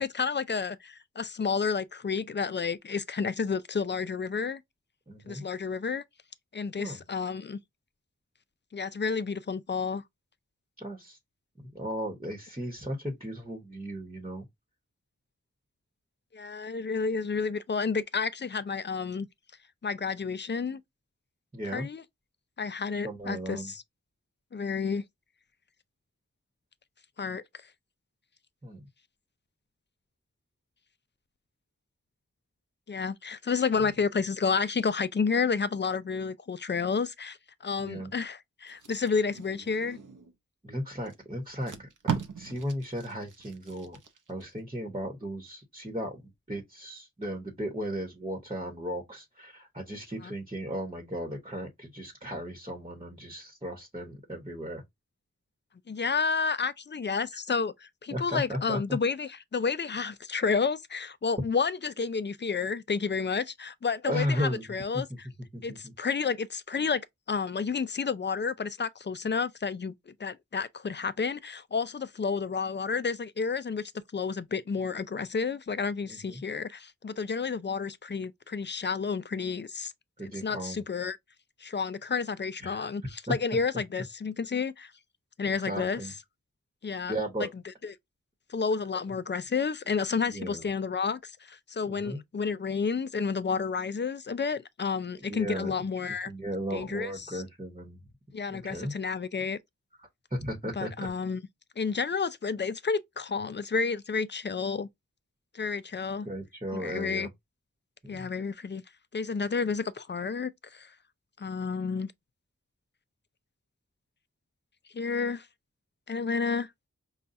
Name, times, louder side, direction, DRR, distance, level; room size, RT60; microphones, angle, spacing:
voice 1, 0.0-4.6 5.3-6.0 6.5-7.6 8.7-10.0 16.3-19.3 19.8-20.8 21.7-22.0 22.6-23.8 24.5-25.0 27.2-27.4 32.9-37.4 37.6-40.0 50.2-50.3 55.9-65.3 65.6-79.9 80.2-81.2 81.6-84.9 85.4-86.0 86.8-87.5 87.8-87.9 88.5-96.3 96.7-97.4 98.3-99.6 100.8-101.4 101.8-104.9 105.5-106.3 106.7-107.3 108.1-108.8 109.1-110.9 111.4-112.1 114.9-115.5 116.1-116.7, left 5 dB, 35° left, 0.4 m, -31 dB
voice 2, 5.1-5.4 6.8-7.0 10.8-11.2 11.6-14.4 21.5-21.9 22.9-23.7 28.6-28.9 33.7-33.8 37.8-38.1 40.6-44.0 44.3-54.8 58.1-58.8 64.1-65.0 65.5-65.9 76.1-76.4 80.2-80.8 82.6-82.9 83.3-83.4 85.4-86.1 87.1-87.5 90.3-90.7 91.9-92.2 95.2-95.7 96.3-98.0 98.5-98.9 100.0-101.1 106.2-107.3 108.0-108.3, equal, 20° right, 1.1 m, -36 dB
Packing tape duct tape, 38.7-40.4 41.1-41.2 41.5-44.5 44.9-45.1, right 6 dB, 80° right, 0.8 m, -38 dB
5.4 x 2.3 x 2.6 m
wide cardioid pair, 50°, 31 cm